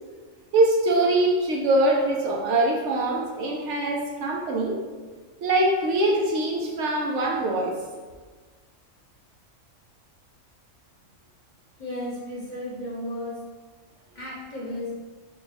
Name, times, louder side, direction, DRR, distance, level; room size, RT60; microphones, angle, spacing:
voice 1, 0.5-4.7 5.4-7.7, right 2 dB, 70° right, -1 dB, 0.9 m, -23 dB
voice 2, 11.8-13.4 14.1-14.9, left 1 dB, 40° left, -6 dB, 0.9 m, -34 dB
3.7 x 2.2 x 4.1 m, 1.4 s
omnidirectional pair, 1.3 m